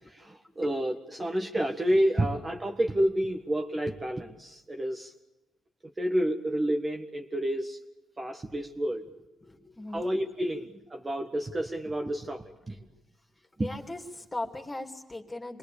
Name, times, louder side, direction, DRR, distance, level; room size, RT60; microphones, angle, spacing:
voice 1, 0.2-5.1 6.0-7.8 8.2-9.0 9.9-12.7 13.6-13.7, right 1 dB, 25° right, 3 dB, 1.7 m, -29 dB
voice 2, 9.4-10.1 12.8-12.9 13.6-15.6, left 2 dB, 15° left, 4 dB, 3.0 m, -39 dB
26.5 x 20.0 x 7.0 m, 0.99 s
cardioid pair, 90°, 0 cm